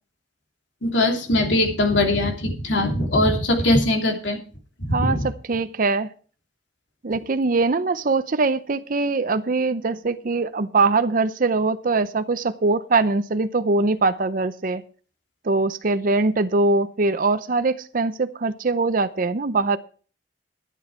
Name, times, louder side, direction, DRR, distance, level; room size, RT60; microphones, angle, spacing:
voice 1, 0.8-4.4 4.8-5.3, left 1 dB, 80° left, 3 dB, 2.9 m, -21 dB
voice 2, 4.9-5.2 5.5-6.1 7.0-14.8 15.4-19.8, right 3 dB, 50° right, 11 dB, 0.6 m, -22 dB
12.0 x 10.0 x 4.7 m, 0.40 s
head